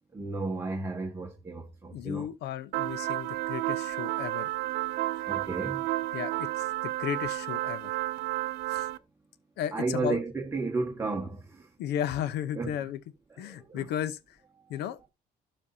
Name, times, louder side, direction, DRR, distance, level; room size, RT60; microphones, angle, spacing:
voice 1, 0.1-2.3 5.3-5.9 9.7-11.7 12.5-12.7 13.3-13.9, right 3 dB, 15° right, 1.5 m, -33 dB
voice 2, 1.9-4.5 5.2-5.3 6.1-8.0 8.7-8.9 9.6-10.2 11.8-13.0 13.4-14.4 14.7-15.1, left 10 dB, 80° left, 0.8 m, -34 dB
sound 1, 2.7-9.0, right 16 dB, 90° right, 0.6 m, -31 dB
12.5 x 5.2 x 2.7 m
cardioid pair, 110°, 17 cm